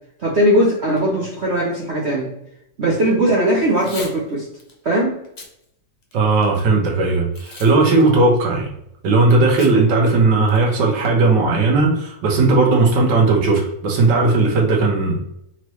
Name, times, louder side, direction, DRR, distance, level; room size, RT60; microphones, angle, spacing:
voice 1, 0.2-2.3 2.8-4.5 4.8-5.2, right 1 dB, 50° right, -4 dB, 0.8 m, -19 dB
Packing tape duct tape / Tearing, 3.7-4.1 4.6-4.7 5.2-5.5 6.0-6.6 7.3-7.7 8.0-8.1 9.6-9.7 10.1-10.2 10.5-10.8, left 3 dB, 75° left, 0.3 m, -37 dB
voice 2, 6.1-8.7 9.0-15.2, right 3 dB, 75° right, -1 dB, 1.7 m, -16 dB
4.4 x 3.1 x 3.0 m, 0.78 s
omnidirectional pair, 2.0 m